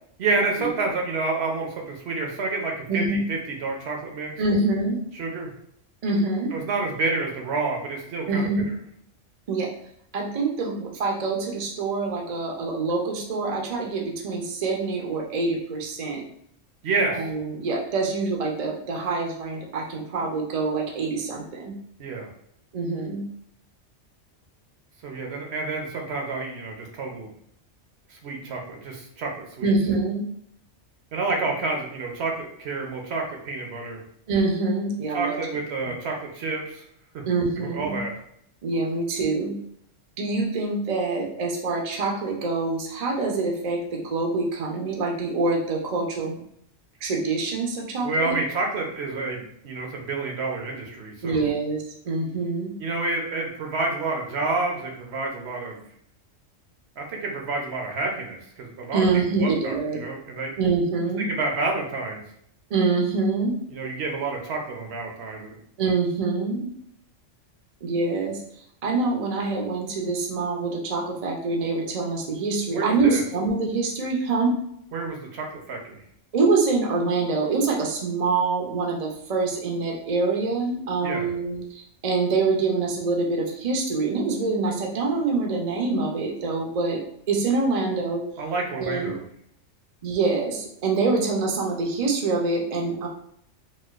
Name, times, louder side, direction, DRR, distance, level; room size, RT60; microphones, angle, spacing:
voice 1, 0.2-4.6 5.1-5.5 6.5-8.5 16.8-17.2 22.0-22.3 25.0-27.3 28.1-29.7 31.1-34.0 35.1-36.8 37.6-38.2 48.0-51.5 52.8-55.8 57.0-59.0 59.3-60.5 61.2-62.2 63.7-65.6 72.7-73.2 74.9-76.0 81.0-81.3 88.4-89.2, right 3 dB, 65° right, 1 dB, 0.9 m, -29 dB
voice 2, 2.9-3.2 4.4-5.0 6.0-6.5 8.3-8.7 9.5-9.7 10.1-16.2 17.1-21.7 22.7-23.2 29.6-30.2 34.3-35.4 37.3-38.0 38.6-39.6 40.2-46.4 47.0-48.4 51.2-52.7 58.9-60.0 60.6-61.3 62.7-63.6 65.8-66.7 67.8-68.4 68.8-74.6 76.3-88.2 88.8-89.2 90.0-93.1, right 3 dB, 45° right, 0 dB, 0.5 m, -25 dB
4.1 x 2.3 x 2.3 m, 0.71 s
omnidirectional pair, 1.3 m